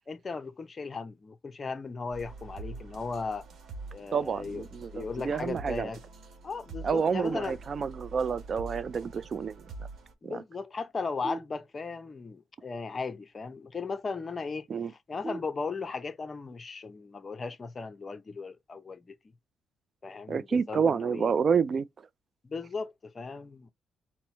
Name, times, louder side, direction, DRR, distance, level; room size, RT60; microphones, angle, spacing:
voice 1, 0.1-3.4 3.9-4.7 4.9-6.0 6.4-7.6 10.2-19.2 20.0-21.3 22.4-23.7, left 4 dB, 35° left, 0.6 m, -37 dB
sound 1, 2.1-10.1, right 3 dB, 65° right, 1.0 m, -45 dB
voice 2, 4.1-5.9 6.8-9.6 10.2-10.4 14.7-14.9 20.3-21.9, right 6 dB, 45° right, 0.4 m, -29 dB
sound 2, 7.2-8.2 11.2-12.2 15.2-16.2, right 2 dB, 25° right, 0.8 m, -42 dB
4.3 x 2.1 x 4.3 m
cardioid pair, 90°, 0 cm